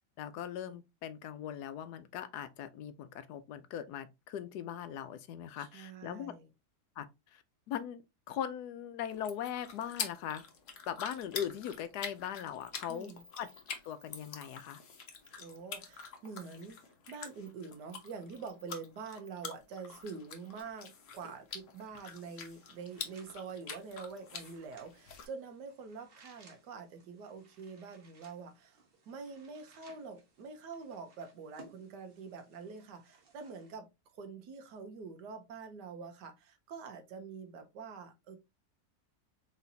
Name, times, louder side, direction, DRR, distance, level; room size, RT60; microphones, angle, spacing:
voice 1, 0.2-6.3 7.0-7.1 7.3-8.0 8.3-10.4 10.9-13.1 13.4-13.5 13.8-14.8, left 9 dB, 80° left, 1.1 m, -40 dB
voice 2, 5.6-6.5 12.9-13.2 15.4-28.8 29.1-33.9 34.1-38.4, right 5 dB, 85° right, 1.5 m, -46 dB
sound 1, 9.1-25.3, left 6 dB, 55° left, 1.1 m, -46 dB
sound 2, 12.6-14.6 14.9-15.0 15.2-15.6 15.9-16.6 17.3-17.5 17.9-18.7 19.2-19.3 19.9-20.0 20.4-20.6, left 2 dB, 15° right, 0.9 m, -60 dB
sound 3, 22.5-33.7, right 3 dB, 40° right, 1.1 m, -63 dB
4.1 x 3.9 x 2.7 m
omnidirectional pair, 1.8 m